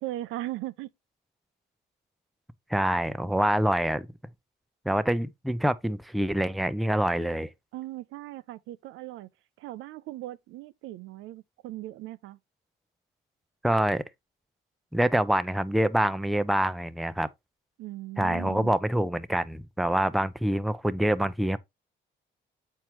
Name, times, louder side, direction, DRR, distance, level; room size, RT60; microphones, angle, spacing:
voice 1, 0.0-0.9 7.7-9.3 9.6-12.4 17.8-18.7, right 16 dB, 90° right, 0.5 m, -38 dB
voice 2, 2.7-4.1 4.9-7.5 13.6-14.0 14.9-17.3 18.2-21.6, right 1 dB, ahead, 0.4 m, -26 dB
7.2 x 4.5 x 3.0 m
cardioid pair, 90°, 20 cm